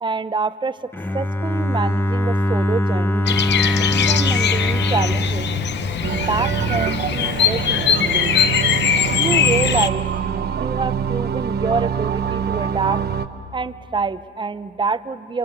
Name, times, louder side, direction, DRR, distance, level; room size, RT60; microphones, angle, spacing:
voice 1, 0.0-3.4 3.9-5.5 6.1-8.3 9.2-10.1 10.6-13.0 13.5-15.4, right 4 dB, 25° right, 12 dB, 0.9 m, -26 dB
Bowed string instrument, 0.9-6.8, equal, 10° left, 0.9 m, -22 dB
Bird vocalization bird call bird song, 3.3-9.9, left 8 dB, 60° left, 0.9 m, -21 dB
sound 1, 6.0-13.3, right 8 dB, 55° right, 1.1 m, -24 dB
27.5 x 25.0 x 8.0 m, 2.4 s
cardioid pair, 90°, 20 cm